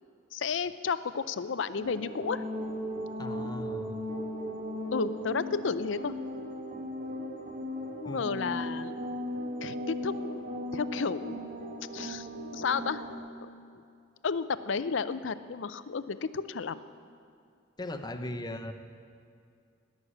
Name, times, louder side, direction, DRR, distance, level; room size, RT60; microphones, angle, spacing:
voice 1, 0.3-2.4 4.9-6.1 8.0-9.0 9.6-11.6 11.9-12.3 12.5-13.0 13.7-13.8 14.2-16.8, left 5 dB, 70° left, 14 dB, 0.5 m, -32 dB
sound 1, 1.8-13.2, equal, 45° right, 1.6 m, -37 dB
voice 2, 3.2-3.9 8.0-8.2 17.8-18.7, left 1 dB, 20° left, 7 dB, 0.8 m, -38 dB
18.5 x 6.5 x 9.9 m, 2.3 s
head